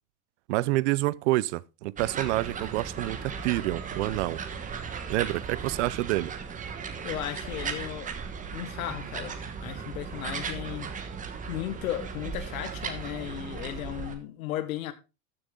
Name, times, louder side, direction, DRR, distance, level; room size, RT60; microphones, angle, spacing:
voice 1, 0.5-4.4 5.1-6.3, right 18 dB, 60° right, 0.6 m, -28 dB
sound 1, 2.0-14.1, right 6 dB, 20° right, 1.3 m, -37 dB
voice 2, 7.0-8.1 8.5-10.9 11.5-14.9, left 12 dB, 80° left, 1.7 m, -35 dB
14.0 x 6.9 x 3.8 m
supercardioid pair, 145°, 41 cm